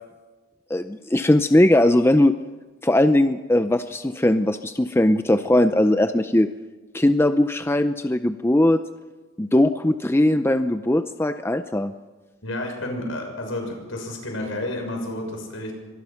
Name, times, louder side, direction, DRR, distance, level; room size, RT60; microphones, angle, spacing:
voice 1, 0.7-2.3 2.8-6.5 6.9-8.8 9.4-11.9, left 1 dB, 10° left, 9 dB, 0.6 m, -19 dB
voice 2, 12.4-15.7, left 1 dB, 75° left, 3 dB, 6.5 m, -30 dB
24.5 x 20.0 x 5.8 m, 1.3 s
head